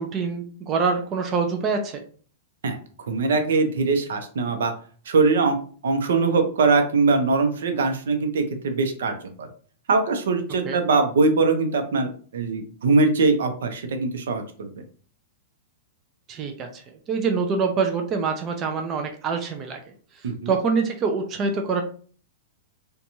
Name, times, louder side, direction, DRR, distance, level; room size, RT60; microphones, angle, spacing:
voice 1, 0.0-2.0 10.7-10.8 16.3-16.8 17.1-19.8 20.5-21.8, right 5 dB, 20° right, 4 dB, 0.3 m, -25 dB
voice 2, 3.1-4.7 5.1-9.5 9.9-14.7 20.2-20.5, right 3 dB, 85° right, 6 dB, 0.6 m, -22 dB
2.9 x 2.2 x 2.6 m, 0.43 s
supercardioid pair, 170°, 0 cm